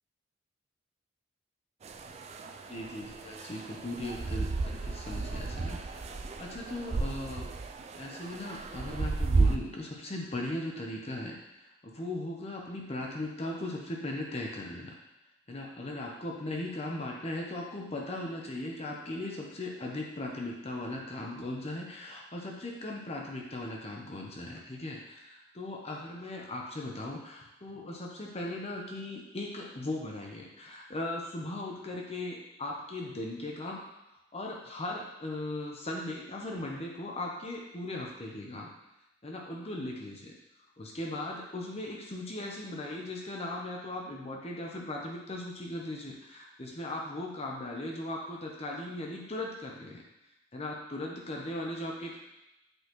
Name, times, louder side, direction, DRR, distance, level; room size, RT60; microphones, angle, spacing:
sound 1, 1.8-9.6, right 3 dB, 35° right, 0.3 m, -33 dB
voice 1, 2.7-7.5 8.0-14.9 15.5-33.8 34.3-38.7 39.2-40.3 40.8-50.0 50.5-52.2, left 1 dB, 30° left, -1 dB, 0.8 m, -38 dB
8.0 x 4.0 x 3.0 m, 0.93 s
head